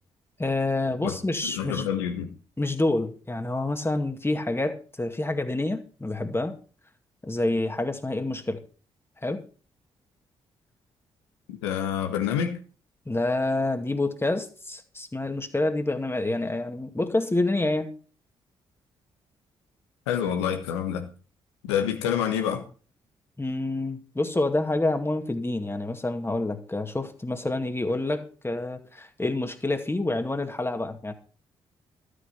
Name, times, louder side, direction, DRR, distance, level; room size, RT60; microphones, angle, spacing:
voice 1, 0.4-1.9 2.6-6.5 7.2-8.6 9.2-9.4 13.1-17.9 23.4-31.1, left 2 dB, 15° left, 2.2 m, -27 dB
voice 2, 1.4-2.3 11.5-12.6 20.1-21.1 21.6-22.6, left 9 dB, 85° left, 1.5 m, -27 dB
12.5 x 8.4 x 5.9 m
hypercardioid pair, 40°, 14 cm